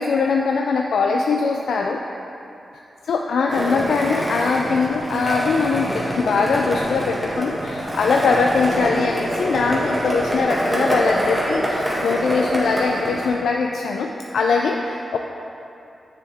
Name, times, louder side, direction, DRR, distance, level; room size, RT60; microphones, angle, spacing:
voice 1, 0.0-2.0 3.0-15.2, left 4 dB, 90° left, 1 dB, 0.3 m, -21 dB
Skateboard, 3.5-13.3, equal, 15° right, 1.6 m, -25 dB
7.0 x 6.9 x 3.4 m, 2.7 s
cardioid pair, 70°, 0 cm